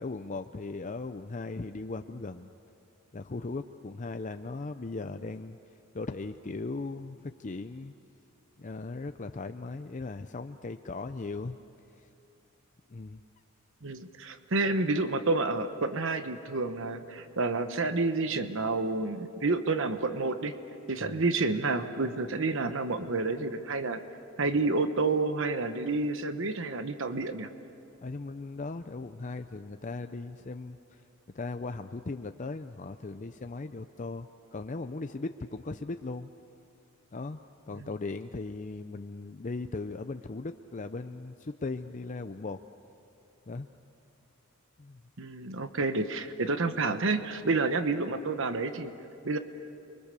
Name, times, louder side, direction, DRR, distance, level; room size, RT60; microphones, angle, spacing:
voice 1, 0.0-2.5 3.1-5.6 5.9-7.9 8.6-11.6 12.0-12.1 12.9-13.2 21.0-21.2 28.0-31.0 31.3-36.3 37.1-37.4 37.7-42.6 43.5-43.7 44.8-45.0, left 3 dB, 35° left, 8 dB, 0.5 m, -38 dB
voice 2, 13.8-20.5 20.9-24.0 24.4-27.5 45.2-48.9 49.2-49.4, right 3 dB, 60° right, 9 dB, 1.1 m, -29 dB
29.5 x 24.0 x 6.8 m, 2.9 s
head